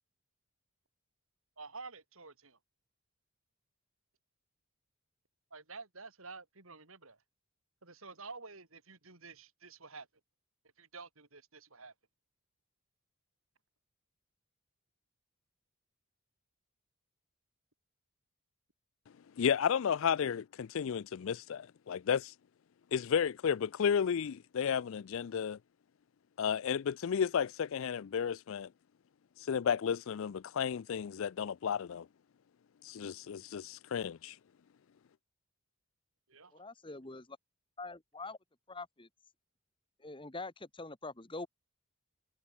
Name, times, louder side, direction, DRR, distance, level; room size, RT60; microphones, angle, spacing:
voice 1, 1.6-2.6 5.5-7.2 7.8-10.1 10.8-11.9 36.3-36.6, right 4 dB, 65° right, 4.0 m, -50 dB
voice 2, 19.4-22.3 22.9-25.6 26.4-28.7 29.5-32.1 32.8-34.4, left 7 dB, 60° left, 0.4 m, -32 dB
voice 3, 36.5-37.4 37.8-38.4 38.7-39.1 40.0-41.5, left 3 dB, 20° left, 1.6 m, -44 dB
head